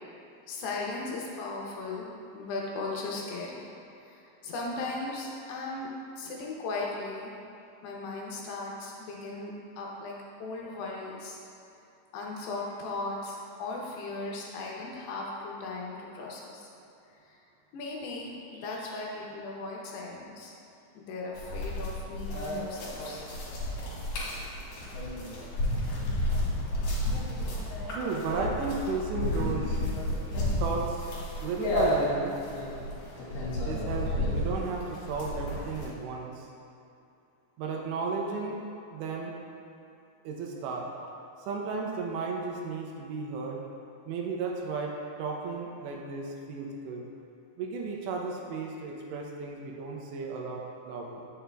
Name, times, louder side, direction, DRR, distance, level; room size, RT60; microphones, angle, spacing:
voice 1, 0.5-2.1 2.3-3.6 4.0-5.9 6.2-7.3 7.8-11.4 12.1-16.7 17.3-17.4 17.7-20.5 21.0-23.2, left 3 dB, 80° left, -3 dB, 2.6 m, -37 dB
sound 1, 21.4-35.9, left 1 dB, 60° left, 2.9 m, -32 dB
voice 2, 27.9-29.8 30.6-31.1 31.4-32.4 33.6-36.5 37.6-38.6 38.9-39.3 40.2-40.9 41.4-43.6 44.1-47.1 47.6-51.3, right 4 dB, 80° right, 0 dB, 2.8 m, -34 dB
8.1 x 7.5 x 2.2 m, 2.6 s
omnidirectional pair, 5.1 m